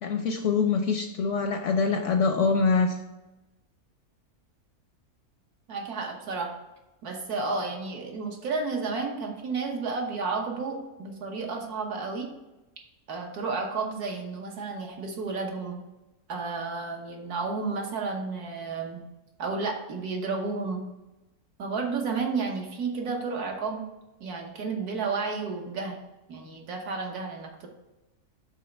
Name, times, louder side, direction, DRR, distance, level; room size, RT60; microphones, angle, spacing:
voice 1, 0.0-2.9, left 4 dB, 65° left, 4 dB, 0.8 m, -24 dB
voice 2, 5.7-6.5 7.0-12.3 13.1-15.8 16.3-19.0 19.4-20.8 21.6-23.8 24.2-26.0 26.3-27.7, right 4 dB, 70° right, 2 dB, 1.5 m, -32 dB
5.5 x 3.9 x 5.1 m, 0.99 s
omnidirectional pair, 1.7 m